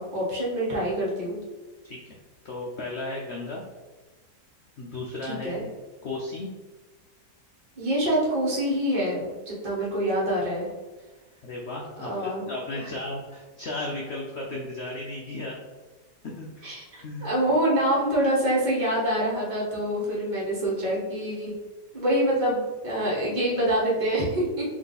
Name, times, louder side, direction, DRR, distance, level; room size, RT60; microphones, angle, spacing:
voice 1, 0.0-1.4 5.3-5.6 7.8-10.7 12.0-12.5 12.8-12.9 16.6-16.8 17.2-21.5 21.9-24.6, right 1 dB, 30° right, -6 dB, 1.3 m, -26 dB
voice 2, 2.4-3.6 4.8-5.7 6.0-6.5 11.4-15.6 16.2-17.3, left 2 dB, 85° left, -1 dB, 0.5 m, -35 dB
3.6 x 3.1 x 3.9 m, 1.2 s
omnidirectional pair, 1.9 m